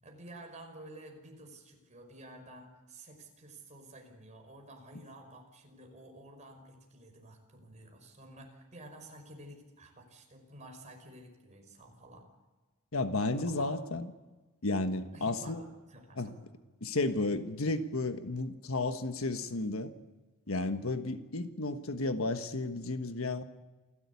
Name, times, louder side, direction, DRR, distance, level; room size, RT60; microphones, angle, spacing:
voice 1, 0.0-12.3 13.4-13.7 15.1-16.3, right 1 dB, 35° right, 3 dB, 5.4 m, -51 dB
voice 2, 12.9-14.1 14.6-15.6 16.2-16.3 16.8-19.9 20.5-23.4, left 2 dB, 70° left, 9 dB, 1.4 m, -33 dB
28.0 x 15.5 x 8.4 m, 1.2 s
head